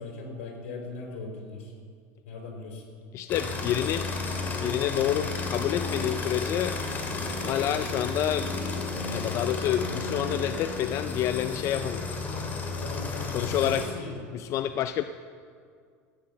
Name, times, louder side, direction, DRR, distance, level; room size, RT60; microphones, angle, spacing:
voice 1, 0.0-1.7 2.2-2.8 12.7-14.2, left 3 dB, 85° left, 1 dB, 4.3 m, -39 dB
voice 2, 3.1-4.1 4.6-6.8 7.4-8.5 9.1-12.1 13.3-13.9 14.3-15.0, left 11 dB, 50° left, 11 dB, 0.4 m, -28 dB
sound 1, 3.3-13.9, left 3 dB, 25° left, 2.5 m, -32 dB
14.5 x 9.6 x 7.6 m, 2.1 s
supercardioid pair, 115°, 7 cm